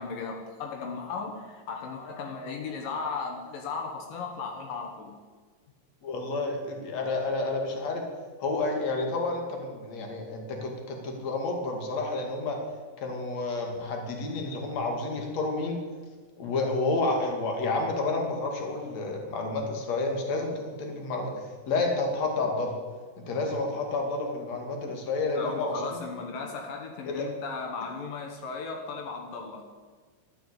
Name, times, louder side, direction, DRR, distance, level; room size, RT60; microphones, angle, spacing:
voice 1, 0.0-5.1 25.3-29.6, left 4 dB, 80° left, 2 dB, 3.2 m, -36 dB
voice 2, 6.0-8.1 8.4-12.6 13.0-15.8 16.4-22.7 23.2-26.0 27.1-27.3, left 3 dB, 55° left, 2 dB, 3.5 m, -30 dB
12.5 x 12.5 x 8.1 m, 1.5 s
omnidirectional pair, 3.8 m